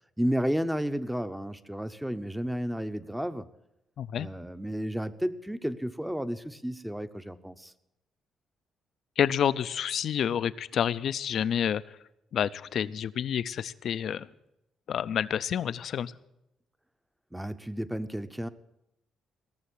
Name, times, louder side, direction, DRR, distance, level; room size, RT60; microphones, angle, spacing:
voice 1, 0.2-3.5 4.1-7.7 17.3-18.5, equal, 5° right, 12 dB, 0.8 m, -32 dB
voice 2, 4.0-4.3 9.2-12.0 12.3-14.3 14.9-16.1, left 9 dB, 65° left, 16 dB, 0.5 m, -29 dB
17.0 x 7.1 x 8.5 m, 0.86 s
cardioid pair, 90°, 0 cm